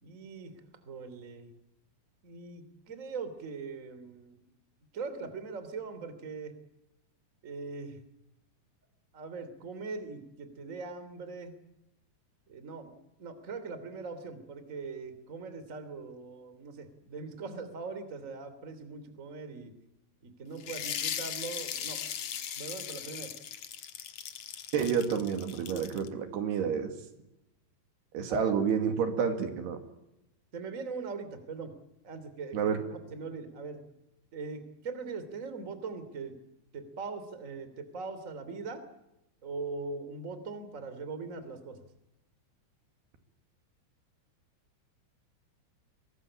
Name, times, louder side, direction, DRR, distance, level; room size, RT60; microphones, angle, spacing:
voice 1, 0.0-0.5 0.9-1.5 2.2-4.4 4.9-6.5 7.4-8.0 9.1-11.5 12.5-19.7 20.2-22.0 22.5-23.3 28.3-28.5 30.5-31.7 32.0-32.6 33.1-33.8 34.3-36.3 36.7-38.8 39.4-41.8, right 4 dB, 20° right, 11 dB, 2.6 m, -41 dB
sound 1, 20.6-26.1, left 9 dB, 60° left, 1.8 m, -38 dB
voice 2, 24.7-26.9 28.1-29.8 32.5-32.8, right 7 dB, 70° right, 7 dB, 4.2 m, -29 dB
24.0 x 20.0 x 8.7 m, 0.87 s
omnidirectional pair, 5.0 m